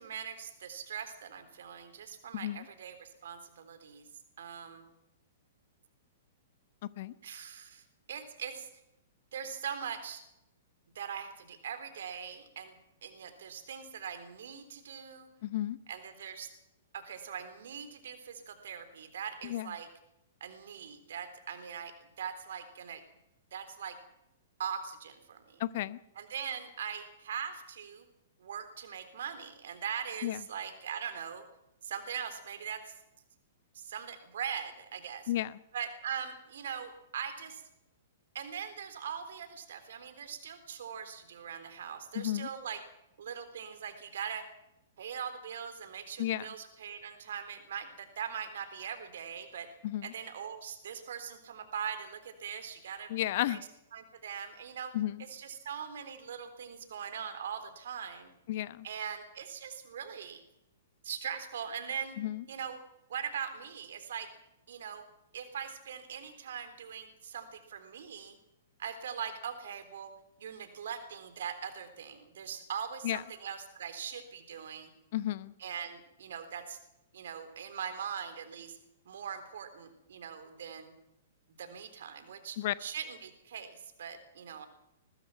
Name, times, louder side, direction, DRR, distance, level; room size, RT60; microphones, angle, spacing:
voice 1, 0.0-4.1 4.4-4.9 7.2-8.7 9.3-10.2 11.0-15.3 15.9-16.5 16.9-19.9 20.4-23.0 23.5-24.0 24.6-25.6 26.2-28.1 28.4-31.4 31.8-32.9 33.7-35.3 35.7-37.6 38.3-42.8 43.2-44.5 45.0-49.7 50.0-53.1 53.5-53.6 53.9-55.0 55.3-58.3 58.8-60.4 61.0-62.2 62.5-62.8 63.1-64.3 64.7-65.0 65.3-68.4 68.8-70.1 70.4-74.9 75.6-76.8 77.1-78.8 79.1-80.9 81.6-84.7, right 7 dB, 60° right, 10 dB, 3.7 m, -41 dB
voice 2, 2.3-2.7 7.0-7.1 15.4-15.8 19.4-19.7 25.6-26.0 30.2-30.4 35.3-35.6 42.1-42.5 46.2-46.5 49.8-50.1 53.1-53.6 54.9-55.2 58.5-58.9 62.2-62.4 73.0-73.2 75.1-75.5 82.6-82.7, left 14 dB, 50° left, 17 dB, 0.9 m, -33 dB
21.5 x 20.5 x 6.0 m, 0.86 s
figure-of-eight pair, 110°, 0 cm